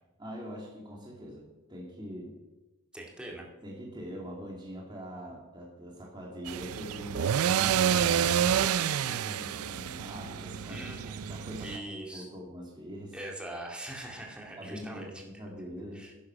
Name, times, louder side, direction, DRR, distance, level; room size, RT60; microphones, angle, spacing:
voice 1, 0.2-2.4 3.2-7.3 7.6-11.0 11.3-13.2 14.6-16.1, equal, 20° right, -2 dB, 2.1 m, -43 dB
voice 2, 2.9-3.5 10.7-12.3 13.1-15.0 15.9-16.1, right 1 dB, 5° right, -1 dB, 2.1 m, -42 dB
sound 1, 6.5-11.8, right 9 dB, 85° right, 0.4 m, -28 dB
10.5 x 10.0 x 6.0 m, 1.1 s
head